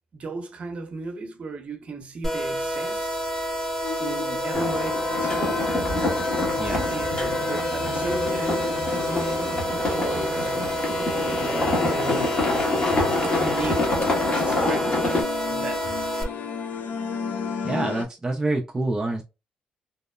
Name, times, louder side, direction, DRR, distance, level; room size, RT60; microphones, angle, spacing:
voice 1, 0.1-3.3 4.0-5.7 6.8-10.8 11.3-12.4 13.2-14.0 14.4-15.0 15.5-16.1, right 3 dB, 50° right, 0.8 m, -36 dB
sound 1, 2.2-16.2, equal, 10° left, 1.1 m, -29 dB
sound 2, 3.8-18.0, left 5 dB, 65° left, 0.5 m, -33 dB
sound 3, 4.5-15.2, left 2 dB, 40° left, 1.3 m, -27 dB
voice 2, 17.6-19.2, right 2 dB, 20° right, 0.4 m, -27 dB
2.9 x 2.0 x 2.3 m
cardioid pair, 85°, 3 cm